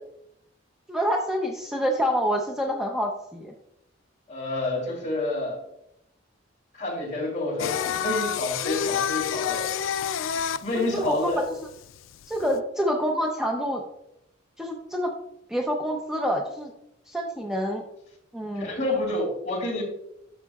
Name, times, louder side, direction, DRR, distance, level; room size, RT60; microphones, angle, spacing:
voice 1, 0.9-3.5 10.7-11.3 11.6-11.7 12.3-13.8 14.6-15.1 15.5-16.7 17.1-17.8 18.3-18.7, equal, 5° right, 0 dB, 0.6 m, -27 dB
voice 2, 4.3-5.6 6.7-9.7 10.6-11.4 12.4-12.6 18.5-19.8, left 2 dB, 35° left, -2 dB, 3.0 m, -29 dB
Singing, 7.6-12.6, left 8 dB, 75° left, 0.3 m, -29 dB
10.5 x 6.5 x 2.3 m, 0.82 s
head